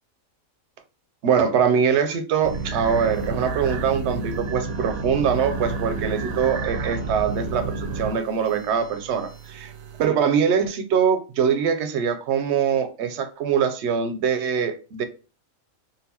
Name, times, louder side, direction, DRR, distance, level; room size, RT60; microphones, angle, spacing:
voice 1, 1.2-9.7 10.0-15.0, right 7 dB, 65° right, 0.7 m, -23 dB
sound 1, 2.4-10.1, right 3 dB, 85° right, 1.0 m, -31 dB
4.0 x 2.2 x 2.7 m
omnidirectional pair, 1.4 m